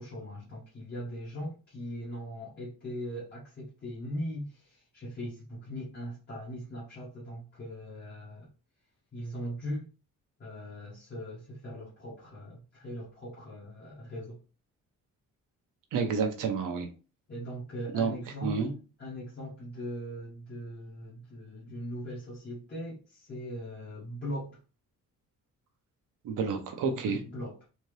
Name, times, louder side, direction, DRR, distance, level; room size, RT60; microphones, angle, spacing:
voice 1, 0.0-8.5 9.1-9.9 10.4-14.4 17.3-18.7 19.0-24.6 26.9-27.6, equal, 30° left, 1.4 m, -40 dB
voice 2, 15.9-16.9 17.9-18.1 18.4-18.7 26.2-27.2, right 5 dB, 80° right, 1.0 m, -29 dB
4.2 x 2.9 x 3.2 m
cardioid pair, 170°, 31 cm